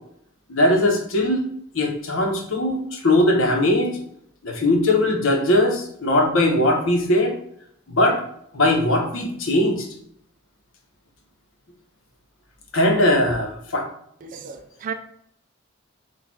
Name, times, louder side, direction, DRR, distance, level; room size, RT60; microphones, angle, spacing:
voice 1, 0.5-1.4 1.7-3.9 4.4-7.3 7.9-8.2 8.5-9.9 12.7-13.8, left 1 dB, 65° left, 1 dB, 1.0 m, -20 dB
voice 2, 14.2-14.9, right 7 dB, 40° right, 5 dB, 0.4 m, -33 dB
4.3 x 2.5 x 4.5 m, 0.70 s
head